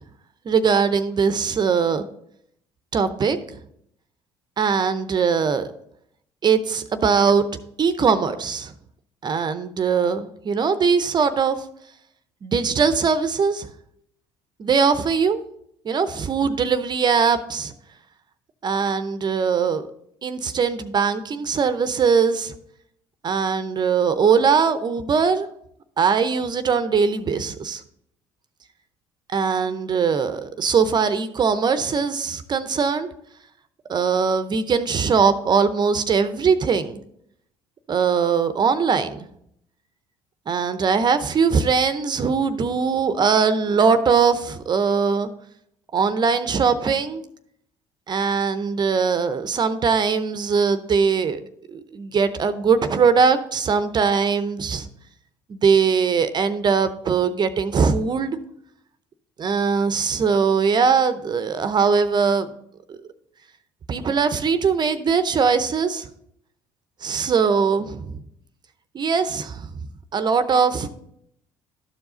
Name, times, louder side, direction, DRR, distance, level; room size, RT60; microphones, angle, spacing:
voice 1, 0.5-2.0 2.9-3.4 4.6-5.7 6.4-7.5 7.8-8.7 9.2-11.6 12.4-13.7 14.6-15.4 15.8-17.7 18.6-19.9 20.2-22.5 23.2-25.5 26.0-27.8 29.3-33.1 33.9-37.0 37.9-39.2 40.5-45.3 45.9-47.2 48.1-51.4 51.7-54.9 55.5-58.4 59.4-62.5 62.9-63.0 63.9-66.1 67.0-68.2 68.9-69.7 70.1-70.9, right 5 dB, 35° right, 11 dB, 0.6 m, -21 dB
12.0 x 4.7 x 3.8 m, 0.73 s
hypercardioid pair, 70°, 12 cm